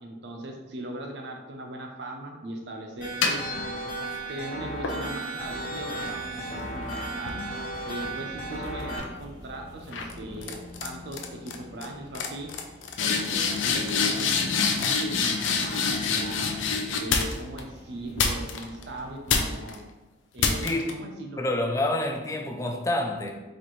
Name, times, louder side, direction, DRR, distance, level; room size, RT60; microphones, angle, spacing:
voice 1, 0.0-3.8 4.0-7.4 7.9-12.5 13.0-16.5 17.0-19.8 20.3-21.4, right 1 dB, 60° right, 2 dB, 0.6 m, -39 dB
sound 1, 3.0-4.2 4.8-8.4 8.8-9.2 9.9-10.1 10.4-10.9 11.1-11.5 11.8-11.9 12.1-17.6 18.2-18.8 19.3-19.8 20.4-20.9, left 5 dB, 85° left, 0.5 m, -28 dB
sound 2, 3.0-9.0, right 2 dB, 45° left, 1.1 m, -35 dB
sound 3, 5.4-19.1, left 1 dB, 20° right, 0.7 m, -48 dB
voice 2, 20.6-20.9 21.4-23.4, left 1 dB, 15° left, 3 dB, 0.3 m, -28 dB
4.2 x 2.6 x 3.1 m, 1.1 s
head